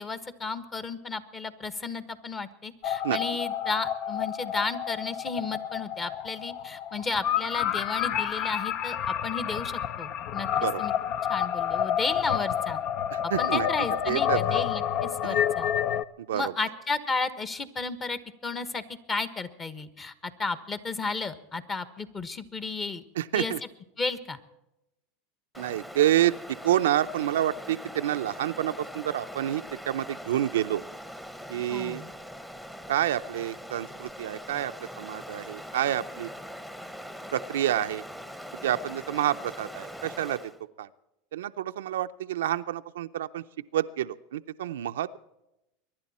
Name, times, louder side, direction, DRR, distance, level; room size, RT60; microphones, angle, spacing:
voice 1, 0.0-10.5 10.8-10.9 11.3-12.8 13.4-15.7 16.3-18.8 19.1-23.0 23.3-23.5 24.0-24.4 31.7-32.1, left 4 dB, 25° left, 13 dB, 1.3 m, -33 dB
sound 1, 2.8-16.0, left 9 dB, 50° left, 0.6 m, -29 dB
voice 2, 13.1-13.7 14.1-14.6 15.2-15.4 16.2-16.5 23.2-23.6 25.6-30.8 31.5-32.0 32.9-36.3 37.3-38.0 38.6-40.4 40.8-40.9 41.3-43.4 43.7-45.2, right 12 dB, 85° right, 9 dB, 0.6 m, -28 dB
Stream, 25.5-40.6, equal, 5° left, 1.1 m, -42 dB
23.5 x 11.0 x 4.3 m, 0.91 s
supercardioid pair, 115°, 0 cm